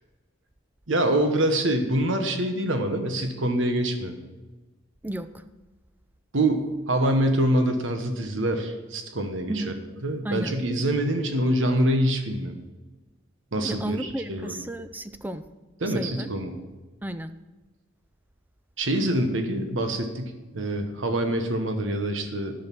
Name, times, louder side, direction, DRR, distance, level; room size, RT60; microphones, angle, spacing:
voice 1, 0.9-4.1 6.3-9.6 10.0-12.6 13.5-14.5 15.8-16.6 18.8-22.5, right 1 dB, 75° right, 6 dB, 1.3 m, -25 dB
voice 2, 5.0-5.4 9.5-9.7 10.2-10.5 13.6-15.5 15.9-16.3 17.0-17.3, right 1 dB, 10° right, 11 dB, 0.4 m, -33 dB
10.5 x 6.5 x 6.1 m, 1.2 s
head